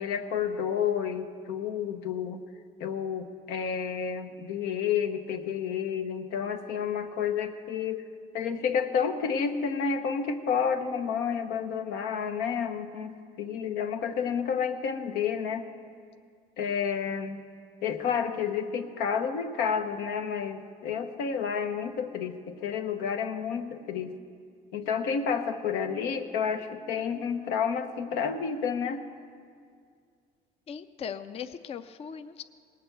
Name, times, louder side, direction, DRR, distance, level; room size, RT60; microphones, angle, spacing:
voice 1, 0.0-2.4 2.8-8.1 8.3-15.7 16.6-17.4 17.8-24.1 24.7-29.0, left 7 dB, 90° left, 7 dB, 0.9 m, -30 dB
voice 2, 30.7-32.4, left 7 dB, 35° left, 11 dB, 0.4 m, -39 dB
18.5 x 6.8 x 7.9 m, 2.2 s
cardioid pair, 110°, 17 cm